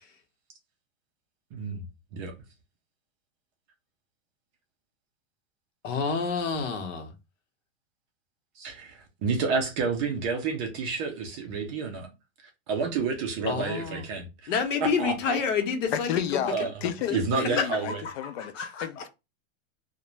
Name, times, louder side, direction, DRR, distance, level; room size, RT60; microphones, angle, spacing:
voice 1, 5.8-7.1 13.5-14.1 14.5-16.3 16.6-16.7 17.1-17.7 18.0-19.0, left 6 dB, 80° left, 0.9 m, -29 dB
voice 2, 8.6-12.1 12.7-14.5 14.8-15.4 16.4-16.7 17.1-18.0, right 5 dB, 25° right, 0.4 m, -29 dB
voice 3, 15.9-19.1, left 10 dB, 55° left, 0.5 m, -32 dB
2.4 x 2.1 x 3.0 m
supercardioid pair, 155°, 37 cm